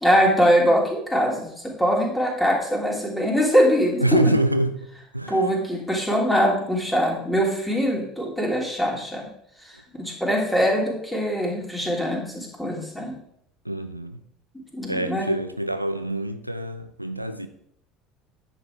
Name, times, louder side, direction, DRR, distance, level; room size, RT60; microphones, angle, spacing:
voice 1, 0.0-4.2 5.3-9.3 9.6-13.2 14.7-15.3, equal, 5° left, 3.3 m, -22 dB
voice 2, 4.0-5.5 13.6-14.2 14.9-17.5, right 1 dB, 90° right, 0.4 m, -25 dB
10.0 x 7.1 x 4.7 m
figure-of-eight pair, 65°, 0 cm